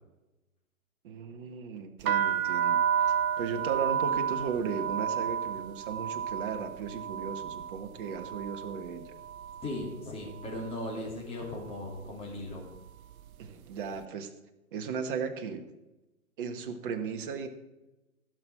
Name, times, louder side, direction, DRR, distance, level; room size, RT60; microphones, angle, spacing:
voice 1, 1.0-2.8 3.4-9.1 13.4-14.3 14.7-15.6 16.4-17.5, right 6 dB, 35° right, 7 dB, 1.4 m, -36 dB
sound 1, 2.0-9.9 10.2-10.8 11.5-11.8 12.0-13.5, right 8 dB, 70° right, 0.5 m, -31 dB
voice 2, 9.6-12.6, left 1 dB, 15° left, -2 dB, 3.1 m, -37 dB
15.5 x 6.4 x 5.7 m, 1.0 s
figure-of-eight pair, 130°, 44 cm